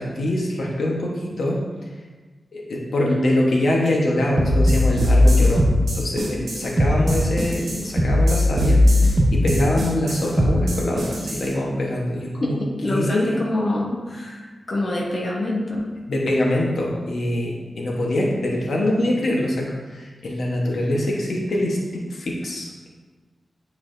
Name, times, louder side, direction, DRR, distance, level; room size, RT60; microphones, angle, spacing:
voice 1, 0.0-1.6 2.5-5.6 5.9-12.6 12.9-13.3 16.1-22.9, left 1 dB, 65° left, -2 dB, 1.0 m, -24 dB
sound 1, 4.4-11.5, left 1 dB, 60° right, 1.5 m, -18 dB
voice 2, 12.4-15.9, left 1 dB, 35° left, -3 dB, 1.0 m, -26 dB
9.4 x 4.7 x 2.6 m, 1.3 s
wide cardioid pair, 165°, 0 cm